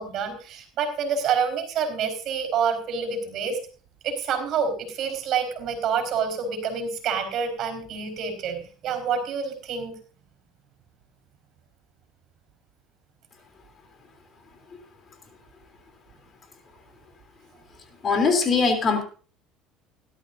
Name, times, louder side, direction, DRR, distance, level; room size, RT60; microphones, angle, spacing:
voice 1, 0.0-3.6 4.0-9.9, right 6 dB, 55° right, 7 dB, 4.4 m, -27 dB
voice 2, 18.0-19.0, left 4 dB, 35° left, 6 dB, 3.3 m, -21 dB
17.0 x 12.5 x 2.7 m, 0.38 s
supercardioid pair, 90°, 0 cm